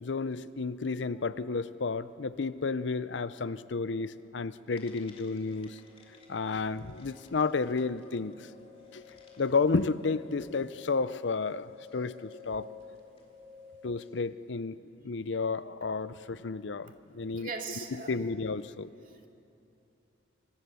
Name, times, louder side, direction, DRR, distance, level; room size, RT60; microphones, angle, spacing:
voice 1, 0.0-5.8 6.3-8.3 8.9-9.0 9.4-12.7 13.8-14.8 15.0-17.5 18.1-19.2, left 4 dB, 70° left, 15 dB, 0.6 m, -32 dB
sound 1, 4.7-14.2, left 6 dB, 30° left, 3.2 m, -53 dB
voice 2, 17.3-18.1, right 4 dB, 45° right, 2 dB, 2.5 m, -39 dB
26.0 x 25.0 x 7.0 m, 2.8 s
head